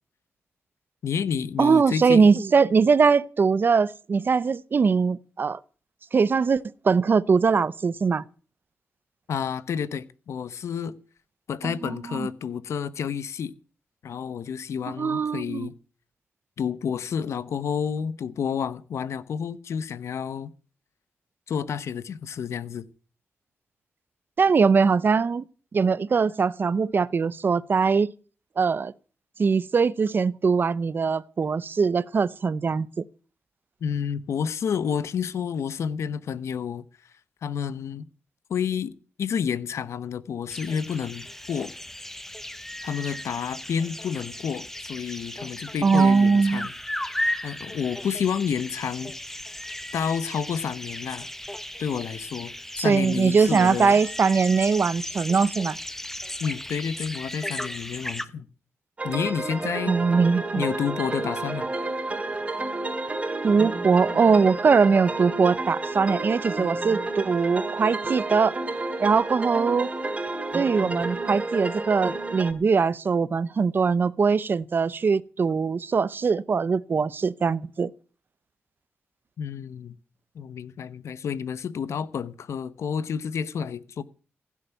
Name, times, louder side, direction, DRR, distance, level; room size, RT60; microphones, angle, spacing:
voice 1, 1.0-2.3 9.3-10.9 11.5-13.5 14.0-15.7 16.6-20.5 21.5-22.8 33.8-36.8 37.4-38.1 38.5-41.7 42.8-46.7 47.4-49.1 49.9-51.3 51.8-54.0 56.4-58.5 59.0-60.0 60.5-61.7 79.4-80.0 80.3-84.0, left 7 dB, 75° left, 1.0 m, -30 dB
voice 2, 1.6-5.6 6.1-8.2 11.6-12.3 15.0-15.7 24.4-25.5 25.7-28.1 28.6-28.9 29.4-33.0 45.8-46.7 52.8-55.8 59.9-60.6 63.4-68.6 69.0-69.9 70.5-77.9, right 5 dB, 45° right, 0.8 m, -21 dB
sound 1, 40.5-58.3, left 1 dB, 5° left, 1.1 m, -36 dB
sound 2, 59.0-72.5, right 2 dB, 25° right, 2.4 m, -30 dB
16.0 x 7.4 x 9.2 m
cardioid pair, 90°, 5 cm